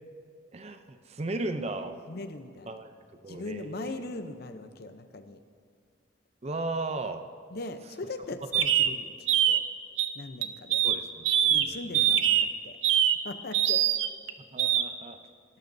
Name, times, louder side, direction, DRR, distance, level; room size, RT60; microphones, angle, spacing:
voice 1, 0.5-2.0 2.7-2.9 3.2-4.1 6.4-7.2 10.8-12.2 14.5-15.2, right 2 dB, 35° right, 8 dB, 0.5 m, -36 dB
voice 2, 2.1-2.7 3.3-5.4 7.5-9.1 9.5-9.6 10.1-10.8 11.5-12.8 13.2-13.9, left 2 dB, 55° left, 9 dB, 0.7 m, -40 dB
sound 1, 8.5-8.9 9.3-9.6 10.0-10.1 10.4-10.9 11.2-11.6 11.9-12.5 12.8-13.1 13.5-14.3 14.6-14.8, right 10 dB, 80° right, 0.5 m, -23 dB
18.0 x 12.0 x 2.7 m, 2.2 s
head